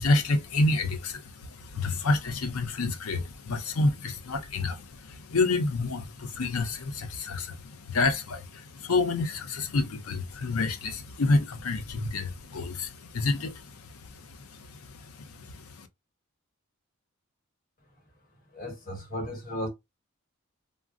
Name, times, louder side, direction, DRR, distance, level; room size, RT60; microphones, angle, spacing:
voice 1, 0.0-15.9, left 3 dB, 85° left, 0.6 m, -29 dB
voice 2, 18.5-19.7, equal, 40° left, 1.0 m, -35 dB
3.7 x 2.1 x 2.4 m
head